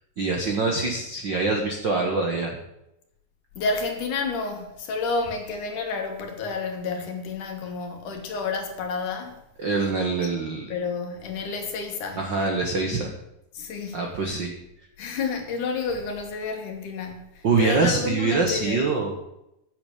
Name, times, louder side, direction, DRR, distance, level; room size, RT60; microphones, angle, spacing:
voice 1, 0.2-2.6 9.6-10.7 12.2-13.1 13.9-14.5 17.4-19.2, right 3 dB, 65° right, 1.1 m, -24 dB
voice 2, 3.6-9.4 10.2-10.3 10.7-12.3 13.5-14.0 15.0-18.9, left 4 dB, 65° left, 2.9 m, -30 dB
8.9 x 6.9 x 8.5 m
omnidirectional pair, 4.1 m